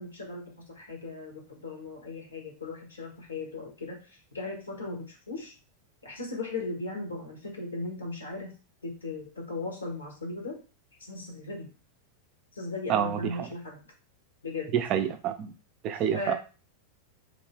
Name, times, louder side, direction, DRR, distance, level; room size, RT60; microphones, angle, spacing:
voice 1, 0.0-5.5 6.0-8.5 8.8-10.6 11.0-11.7 12.5-13.8 14.4-14.7 15.9-16.3, left 2 dB, 75° left, 1 dB, 1.0 m, -37 dB
voice 2, 12.9-13.5 14.7-15.5 15.8-16.3, right 9 dB, 35° right, 8 dB, 0.4 m, -28 dB
2.5 x 2.1 x 3.5 m, 0.35 s
figure-of-eight pair, 90°, 0 cm